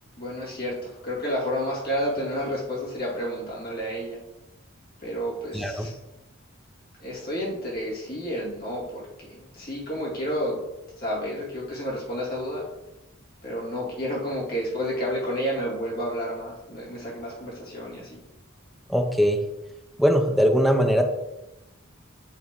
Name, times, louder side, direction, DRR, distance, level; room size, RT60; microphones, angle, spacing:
voice 1, 0.2-4.2 5.0-6.0 7.0-10.6 11.0-12.7 13.4-18.2, equal, 45° left, -5 dB, 2.2 m, -30 dB
voice 2, 5.5-5.9 18.9-19.4 20.0-21.0, equal, ahead, 3 dB, 0.5 m, -20 dB
8.5 x 3.4 x 3.6 m, 0.96 s
head